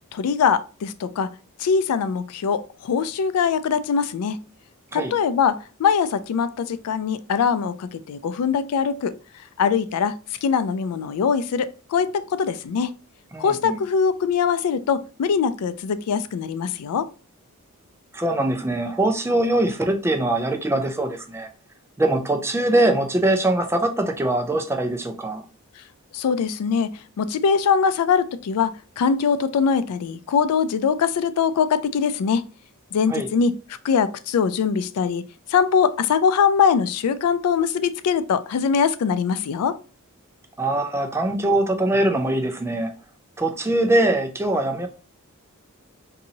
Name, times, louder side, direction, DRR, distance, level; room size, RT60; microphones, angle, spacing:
voice 1, 0.1-1.3 1.6-4.4 4.9-9.1 9.6-10.2 10.4-12.9 13.4-17.1 26.1-26.9 27.2-32.4 32.9-33.5 33.8-35.2 35.5-39.8, left 6 dB, 90° left, 0.4 m, -22 dB
voice 2, 13.3-13.8 18.1-21.5 22.0-25.4 33.1-33.3 40.6-42.9 43.4-44.9, right 1 dB, 10° right, 0.4 m, -22 dB
4.0 x 2.7 x 2.7 m
head